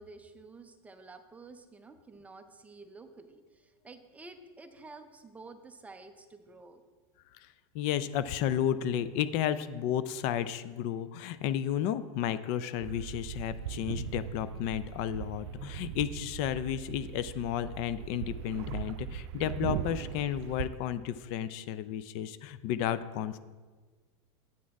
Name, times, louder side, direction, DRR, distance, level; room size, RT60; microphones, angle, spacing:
voice 1, 0.0-6.8, right 3 dB, 10° right, 8 dB, 0.5 m, -51 dB
voice 2, 7.3-23.4, left 10 dB, 50° left, 14 dB, 0.4 m, -32 dB
sound 1, 12.8-20.7, right 10 dB, 75° right, 0.5 m, -39 dB
8.5 x 6.3 x 4.6 m, 1.4 s
supercardioid pair, 145°, 14 cm